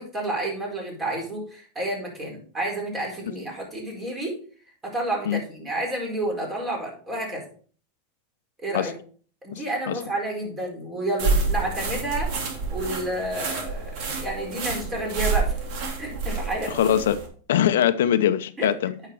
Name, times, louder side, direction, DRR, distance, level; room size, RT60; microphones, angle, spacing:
voice 1, 0.0-4.4 4.8-7.4 8.6-8.9 9.4-12.3 12.7-13.9 14.2-15.5 16.0-16.7 18.6-18.7, right 1 dB, 20° right, 4.4 m, -30 dB
voice 2, 9.5-10.0 16.7-17.2 17.5-18.9, left 10 dB, 85° left, 0.7 m, -22 dB
sound 1, 11.2-17.3, right 4 dB, 55° right, 2.8 m, -28 dB
9.3 x 6.0 x 4.6 m
supercardioid pair, 130°, 0 cm